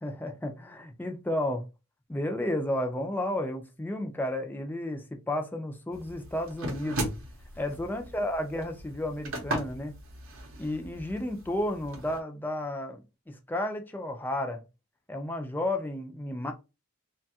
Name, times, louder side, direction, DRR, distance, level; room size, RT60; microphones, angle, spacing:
voice 1, 0.0-1.7 2.1-7.1 7.6-10.0 10.6-14.6 15.1-16.5, left 1 dB, 10° left, 0.4 m, -32 dB
sound 1, 5.9-12.2, right 1 dB, 60° right, 0.7 m, -38 dB
3.1 x 2.3 x 2.7 m
head